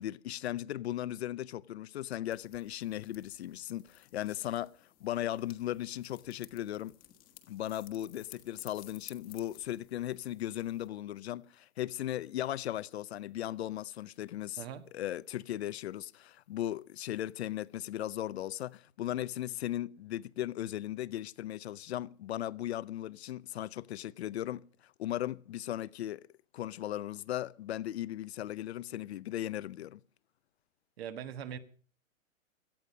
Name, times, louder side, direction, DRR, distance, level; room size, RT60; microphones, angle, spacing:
voice 1, 0.0-4.7 5.0-6.9 7.5-14.6 14.9-26.2 26.5-30.0, left 13 dB, 50° left, 0.7 m, -37 dB
sound 1, 2.3-10.9, left 14 dB, 20° left, 1.4 m, -57 dB
voice 2, 31.0-31.6, right 8 dB, 50° right, 1.6 m, -41 dB
17.5 x 13.5 x 5.3 m
hypercardioid pair, 155°, 40 cm